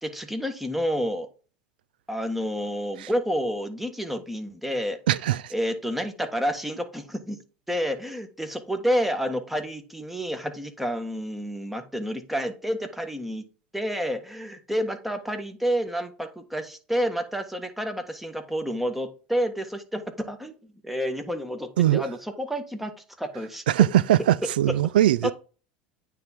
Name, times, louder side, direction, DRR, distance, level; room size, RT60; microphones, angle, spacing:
voice 1, 0.0-1.3 2.1-5.0 5.5-7.4 7.7-13.4 13.7-20.5 20.8-22.9 23.2-23.6 25.2-25.3, equal, 5° right, 1.4 m, -29 dB
voice 2, 5.1-5.5 21.8-22.1 23.7-25.3, right 12 dB, 85° right, 0.3 m, -21 dB
9.2 x 3.6 x 4.4 m
hypercardioid pair, 95°, 5 cm